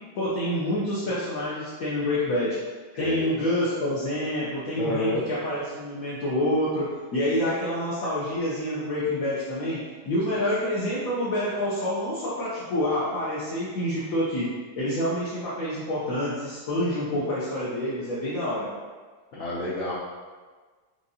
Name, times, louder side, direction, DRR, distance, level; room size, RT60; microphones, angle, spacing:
voice 1, 0.1-2.6 3.0-14.5 14.8-18.7, left 1 dB, 60° left, -8 dB, 1.0 m, -27 dB
voice 2, 4.8-5.2 19.3-20.0, left 1 dB, 80° left, -7 dB, 0.6 m, -29 dB
6.5 x 2.6 x 2.7 m, 1.4 s
omnidirectional pair, 2.2 m